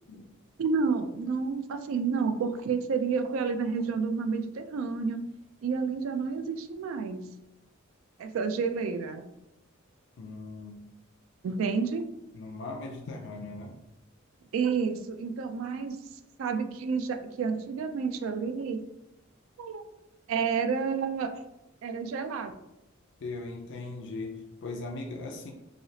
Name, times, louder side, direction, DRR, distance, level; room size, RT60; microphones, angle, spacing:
voice 1, 0.6-5.2 5.6-7.2 8.2-9.2 11.4-12.0 14.5-16.0 16.4-18.8 19.6-19.8 20.3-21.3 21.8-22.5, right 5 dB, 75° right, 8 dB, 0.3 m, -30 dB
voice 2, 10.2-10.9 12.3-13.8 23.2-25.5, left 3 dB, 60° left, 2 dB, 0.4 m, -39 dB
3.2 x 2.7 x 2.7 m, 0.90 s
head